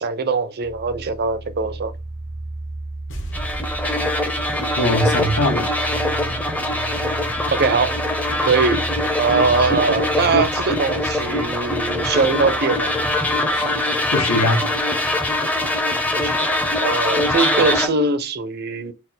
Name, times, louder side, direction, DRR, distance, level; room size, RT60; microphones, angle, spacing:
voice 1, 0.0-1.9 7.5-8.0 8.4-8.9 9.2-12.9 16.2-18.9, right 4 dB, 45° right, 0.5 m, -21 dB
sound 1, 0.6-13.7, right 2 dB, 80° right, 0.7 m, -34 dB
sound 2, 3.1-6.3 6.6-6.7, right 1 dB, 60° left, 0.9 m, -38 dB
sound 3, 3.3-17.9, left 1 dB, 5° left, 0.5 m, -22 dB
voice 2, 4.7-5.7 13.5-14.7, left 1 dB, 85° left, 1.0 m, -22 dB
4.3 x 2.1 x 3.7 m
head